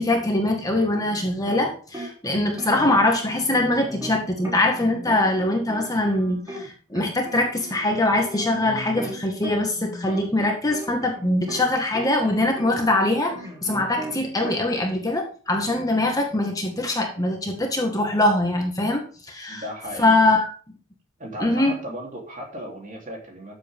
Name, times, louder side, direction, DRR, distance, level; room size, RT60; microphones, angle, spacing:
voice 1, 0.0-13.3 13.6-19.6 20.0-20.5 21.4-21.8, left 2 dB, 15° left, 1 dB, 1.7 m, -22 dB
sound 1, 0.8-1.7 1.9-6.7 6.9-11.7 11.9-14.6, equal, 15° right, 2.9 m, -37 dB
voice 2, 19.5-20.2 21.2-23.6, equal, 35° right, 0 dB, 3.4 m, -36 dB
13.5 x 7.8 x 3.7 m, 0.40 s
head